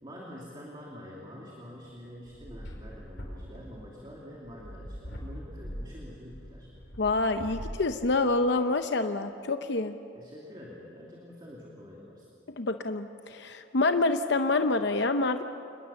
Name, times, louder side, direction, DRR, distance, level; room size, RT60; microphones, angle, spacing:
voice 1, 0.0-6.7 10.1-12.3, equal, 25° right, -3 dB, 2.8 m, -46 dB
sound 1, 1.8-8.3, equal, 85° left, 5.3 m, -42 dB
voice 2, 7.0-10.0 12.6-15.4, left 3 dB, 60° left, 8 dB, 0.8 m, -27 dB
27.5 x 21.0 x 7.1 m, 2.7 s
head